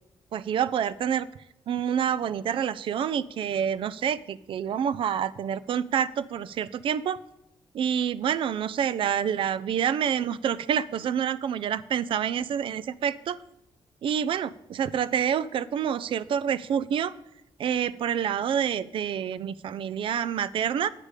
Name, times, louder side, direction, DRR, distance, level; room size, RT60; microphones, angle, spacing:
voice 1, 0.3-1.3 1.7-7.2 7.7-13.4 14.0-17.1 17.6-20.9, right 8 dB, 60° right, 17 dB, 0.4 m, -27 dB
8.4 x 8.2 x 4.9 m, 0.85 s
wide cardioid pair, 170°, 10 cm